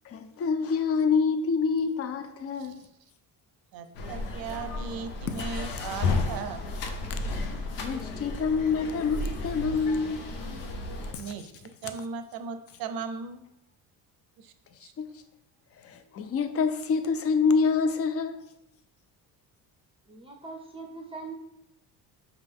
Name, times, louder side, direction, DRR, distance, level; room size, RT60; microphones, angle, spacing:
voice 1, 0.1-2.8 7.8-10.3 11.1-11.2 15.0-15.1 15.9-18.4, left 5 dB, 35° left, 0.5 m, -26 dB
voice 2, 2.5-2.9 3.7-6.6 11.2-11.5 11.8-13.4 14.4-14.5 14.8-14.9, right 5 dB, 60° right, 0.6 m, -37 dB
sound 1, 3.9-11.1, left 3 dB, 80° left, 0.9 m, -33 dB
voice 3, 20.1-21.3, right 4 dB, 15° right, 0.6 m, -41 dB
5.1 x 2.5 x 3.5 m
supercardioid pair, 90°, 41 cm